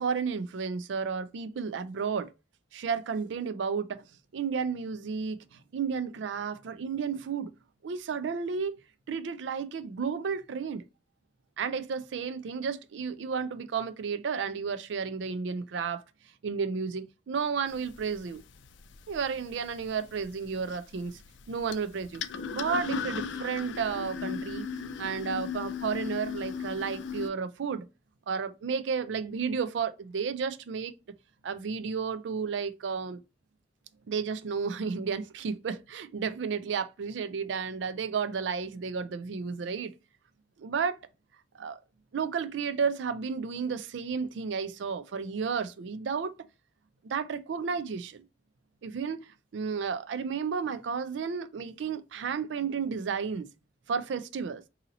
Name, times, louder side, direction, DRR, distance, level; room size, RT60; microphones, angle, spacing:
voice 1, 0.0-2.3 2.7-4.1 4.3-7.5 7.8-8.8 9.1-10.8 11.6-16.0 16.4-18.4 19.1-21.2 21.5-22.2 22.5-24.6 25.0-27.9 28.3-30.9 31.4-33.2 34.1-39.9 40.6-41.0 41.6-41.8 42.1-46.3 47.0-48.2 48.8-49.2 49.5-53.5 53.9-54.6, right 6 dB, 80° right, 0.4 m, -32 dB
sound 1, 17.7-27.3, left 6 dB, 85° left, 0.4 m, -38 dB
2.7 x 2.7 x 3.9 m
head